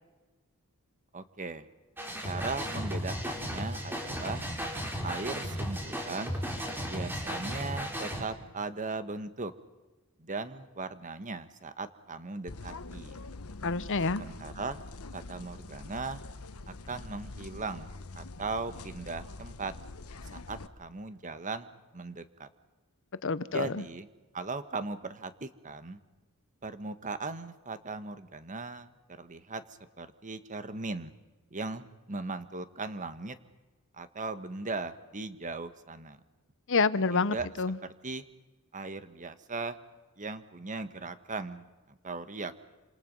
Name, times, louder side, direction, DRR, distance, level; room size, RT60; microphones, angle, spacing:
voice 1, 1.1-1.7 2.2-4.5 5.0-6.4 6.9-9.5 10.2-13.2 14.1-14.8 15.1-16.2 16.7-19.7 20.3-22.5 23.5-24.1 24.3-26.0 26.6-29.6 30.0-31.1 31.5-33.4 33.9-36.2 37.1-37.5 38.0-38.2 38.7-39.8 40.2-41.7 42.0-42.5, right 3 dB, 35° right, 11 dB, 1.5 m, -38 dB
sound 1, 2.0-8.2, equal, 10° right, 4.0 m, -35 dB
sound 2, 12.5-20.7, left 3 dB, 85° left, 1.2 m, -44 dB
voice 2, 13.6-14.2 23.2-23.8 36.7-37.8, left 4 dB, 60° left, 16 dB, 0.9 m, -28 dB
28.5 x 27.0 x 5.5 m, 1.2 s
head